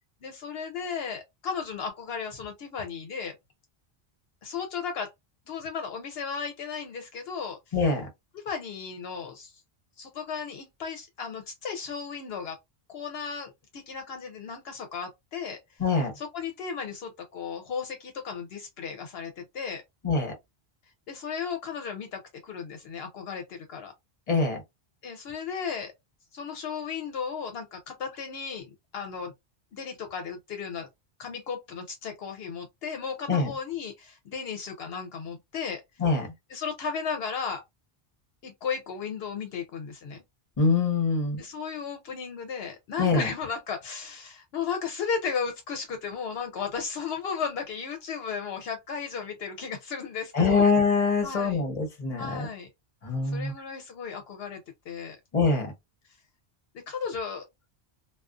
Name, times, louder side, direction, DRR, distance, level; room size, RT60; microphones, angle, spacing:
voice 1, 0.2-3.3 4.4-5.1 5.5-7.7 8.3-9.6 10.0-12.6 12.9-15.6 16.2-19.8 21.1-23.9 25.0-25.9 26.3-29.3 29.7-30.9 31.2-35.8 36.5-37.6 38.4-40.2 41.4-50.7 51.2-51.6 52.2-52.7 53.2-54.6 54.9-55.2 56.9-57.4, left 6 dB, 75° left, 0.8 m, -35 dB
voice 2, 7.7-8.1 15.8-16.1 20.0-20.3 24.3-24.6 33.3-33.5 36.0-36.3 40.6-41.4 43.0-43.3 50.3-52.5 53.0-53.5 55.3-55.7, left 4 dB, 40° left, 0.9 m, -24 dB
2.4 x 2.3 x 2.3 m
omnidirectional pair, 1.1 m